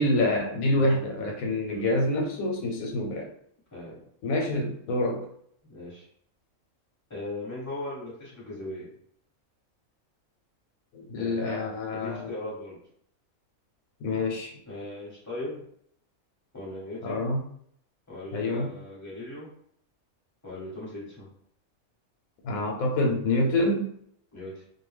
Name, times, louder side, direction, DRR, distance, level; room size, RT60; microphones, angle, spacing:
voice 1, 0.0-3.3 4.2-5.3 10.9-12.3 14.0-14.5 17.0-17.4 18.3-18.7 22.4-23.9, left 1 dB, 90° left, 1 dB, 1.1 m, -26 dB
voice 2, 5.7-6.1 7.1-8.9 11.2-11.5 11.9-12.8 14.7-15.6 16.5-17.2 18.1-19.5 20.4-21.3 24.3-24.6, left 1 dB, 15° left, -6 dB, 1.1 m, -38 dB
2.5 x 2.1 x 3.2 m, 0.67 s
omnidirectional pair, 1.4 m